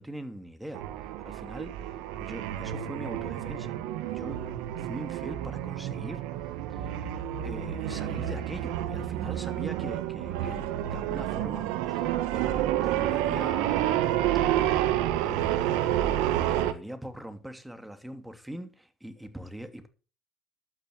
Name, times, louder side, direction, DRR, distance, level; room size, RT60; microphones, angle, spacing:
voice 1, 0.0-3.8 4.1-4.4 4.8-13.9 15.2-19.9, right 1 dB, 5° right, 2.9 m, -42 dB
sound 1, 0.7-16.7, right 12 dB, 75° right, 1.5 m, -29 dB
11.5 x 9.7 x 6.2 m
hypercardioid pair, 70°, 0 cm